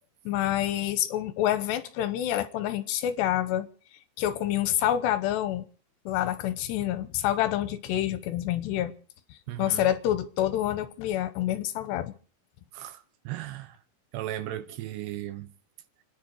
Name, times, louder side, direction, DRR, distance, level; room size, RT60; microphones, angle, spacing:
voice 1, 0.3-3.7 4.2-5.7 6.1-8.9 9.3-12.1, left 12 dB, 75° left, 2.9 m, -27 dB
voice 2, 9.5-9.9 12.7-13.8 14.1-15.5, right 13 dB, 75° right, 3.0 m, -36 dB
29.5 x 10.5 x 4.6 m
omnidirectional pair, 5.3 m